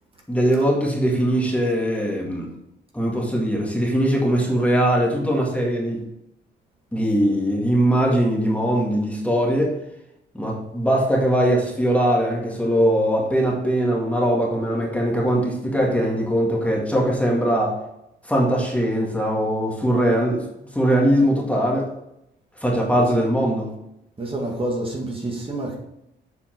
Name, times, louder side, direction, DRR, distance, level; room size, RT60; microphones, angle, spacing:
voice 1, 0.3-2.5 2.9-6.0 6.9-9.8 10.3-17.8 18.2-20.4 20.7-21.9 22.6-23.7, equal, 5° left, -2 dB, 1.9 m, -21 dB
voice 2, 24.2-25.8, right 1 dB, 25° right, -1 dB, 1.9 m, -28 dB
7.6 x 4.3 x 4.5 m, 0.83 s
cardioid pair, 90°, 20 cm